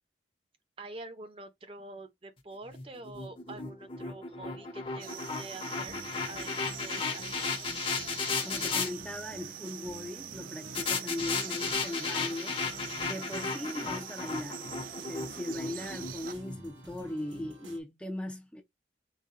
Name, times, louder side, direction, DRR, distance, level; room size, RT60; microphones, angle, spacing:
voice 1, 0.8-6.0 6.3-7.5, right 2 dB, 30° right, 0.8 m, -46 dB
sound 1, 2.7-8.9 10.8-17.0, left 4 dB, 30° left, 0.8 m, -35 dB
sound 2, 5.0-16.3, right 11 dB, 50° right, 0.3 m, -44 dB
sound 3, 5.7-17.8, equal, 90° right, 1.3 m, -50 dB
voice 2, 8.4-12.6 13.0-14.7 15.1-18.6, left 1 dB, 5° left, 0.5 m, -39 dB
4.1 x 2.3 x 3.7 m
head